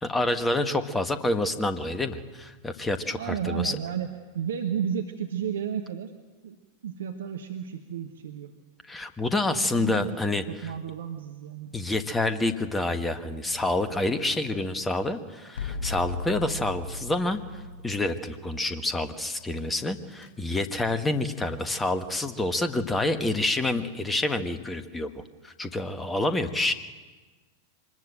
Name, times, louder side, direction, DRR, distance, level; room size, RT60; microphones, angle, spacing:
voice 1, 0.0-3.8 8.8-10.7 11.7-26.7, left 2 dB, 10° left, 9 dB, 1.5 m, -28 dB
voice 2, 3.1-4.1 4.3-6.1 6.4-6.6 6.8-8.5 9.5-11.8, right 8 dB, 65° right, 5 dB, 1.3 m, -32 dB
sound 1, 13.5-14.8 15.5-18.9 20.0-20.3, left 3 dB, 60° left, 5.7 m, -37 dB
25.0 x 20.5 x 7.8 m, 1.3 s
figure-of-eight pair, 90°, 0 cm